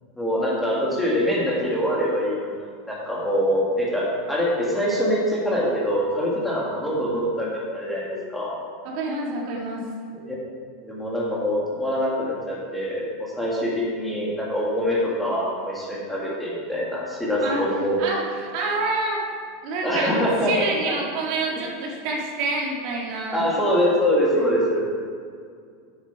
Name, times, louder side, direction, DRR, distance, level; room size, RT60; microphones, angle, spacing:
voice 1, 0.2-2.5 2.9-8.6 10.8-18.0 19.8-20.7 23.3-24.9, equal, 5° left, -6 dB, 1.9 m, -24 dB
voice 2, 8.8-9.8 17.4-17.6 18.0-19.2 19.6-20.2 20.5-23.4 24.3-24.4, right 3 dB, 50° right, -2 dB, 1.8 m, -27 dB
9.6 x 7.3 x 4.6 m, 2.2 s
supercardioid pair, 165°, 0 cm